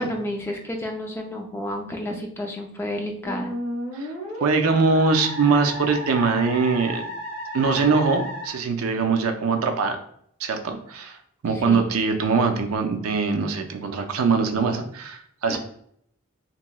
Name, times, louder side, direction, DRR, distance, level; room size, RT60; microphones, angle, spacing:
voice 1, 0.0-3.5 11.5-11.9 15.5-15.6, left 1 dB, 10° left, 1 dB, 0.4 m, -30 dB
Musical instrument, 3.2-8.5, equal, 50° left, 1.2 m, -33 dB
voice 2, 4.4-7.1 7.5-10.0 10.4-11.2 11.4-15.6, right 4 dB, 75° right, 5 dB, 0.4 m, -22 dB
3.0 x 2.9 x 2.2 m, 0.68 s
head